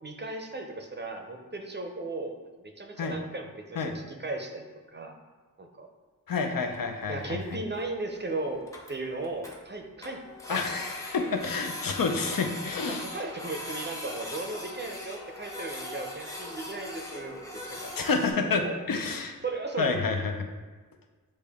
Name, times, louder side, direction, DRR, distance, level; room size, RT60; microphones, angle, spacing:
voice 1, 0.0-5.2 5.6-5.9 7.1-10.2 10.5-10.6 10.9-11.0 12.9-17.8 18.4-18.8 19.4-20.0, right 2 dB, 30° right, 3 dB, 0.5 m, -36 dB
voice 2, 6.3-7.4 10.5-13.1 17.8-19.4 19.8-20.5, left 4 dB, 75° left, 4 dB, 0.5 m, -29 dB
Printer, 6.7-6.8 7.0-7.1 7.5-7.6 7.8-7.9 8.2-8.3 8.5-9.6 10.0-18.3, left 1 dB, 10° left, 0.7 m, -40 dB
6.4 x 2.2 x 3.5 m, 1.4 s
wide cardioid pair, 65°, 34 cm